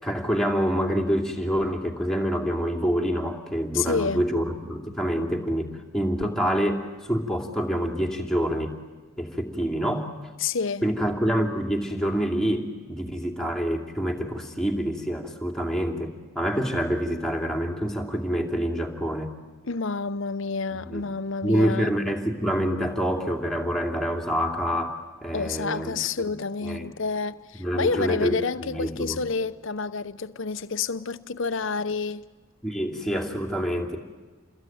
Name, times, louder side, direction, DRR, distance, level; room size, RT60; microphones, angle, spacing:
voice 1, 0.0-8.7 9.2-10.1 10.8-19.3 20.7-21.0 21.4-26.9 27.6-29.2 32.6-34.0, equal, ahead, 2.7 m, -27 dB
voice 2, 3.7-4.3 10.4-10.8 19.6-21.9 25.3-32.2, left 4 dB, 60° left, 0.8 m, -29 dB
28.5 x 22.0 x 9.2 m
head